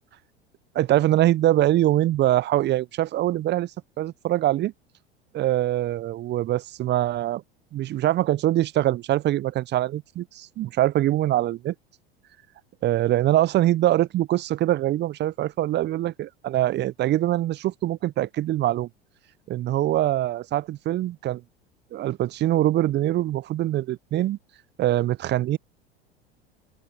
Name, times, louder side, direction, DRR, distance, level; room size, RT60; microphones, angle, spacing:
voice 1, 0.7-3.7 4.0-4.7 5.3-7.4 7.7-11.7 12.8-18.9 19.5-21.4 21.9-24.4 24.8-25.6, right 14 dB, 35° right, 1.0 m, -23 dB
open air
figure-of-eight pair, 75°, 32 cm